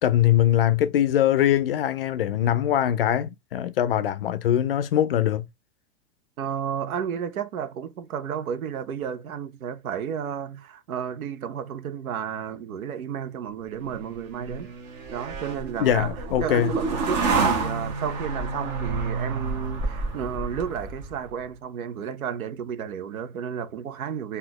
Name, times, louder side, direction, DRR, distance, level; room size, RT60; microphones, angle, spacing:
voice 1, 0.0-5.5 15.8-16.7, left 11 dB, 45° left, 0.5 m, -22 dB
voice 2, 6.4-14.7 15.1-16.1 16.4-24.4, right 8 dB, 85° right, 1.0 m, -32 dB
sound 1, 13.9-21.3, right 4 dB, 30° right, 1.0 m, -29 dB
4.1 x 2.8 x 2.9 m
supercardioid pair, 165°, 41 cm